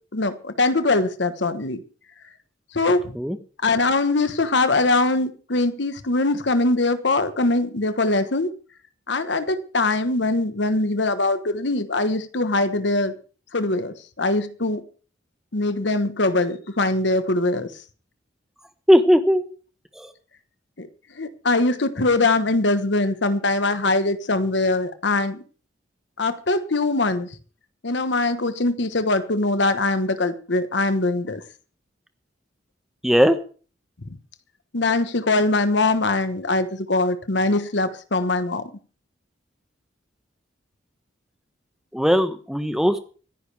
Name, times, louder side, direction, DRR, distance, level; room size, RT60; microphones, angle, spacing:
voice 1, 0.1-1.8 2.7-3.2 3.6-8.5 9.1-13.1 13.5-14.8 15.5-17.7 20.8-20.9 21.1-25.4 26.2-27.3 27.8-31.4 34.0-34.2 34.7-38.7, left 2 dB, 65° left, 1.2 m, -22 dB
voice 2, 18.9-19.5 20.0-20.1 33.0-33.4 41.9-43.0, equal, ahead, 1.1 m, -18 dB
25.0 x 10.0 x 3.4 m
head